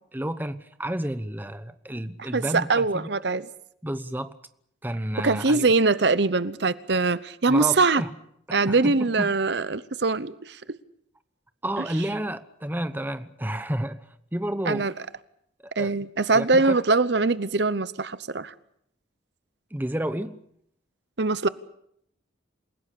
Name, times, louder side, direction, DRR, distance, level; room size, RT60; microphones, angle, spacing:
voice 1, 0.1-3.1 3.8-4.4 4.8-5.7 7.5-8.1 8.5-9.3 11.6-14.9 15.6-16.0 16.3-16.8 19.7-20.4, right 1 dB, 10° right, 0.9 m, -31 dB
voice 2, 2.3-3.5 5.2-8.0 8.5-10.6 14.7-14.9 15.8-18.5 21.2-21.5, right 3 dB, 60° right, 0.8 m, -22 dB
28.0 x 17.0 x 8.4 m
head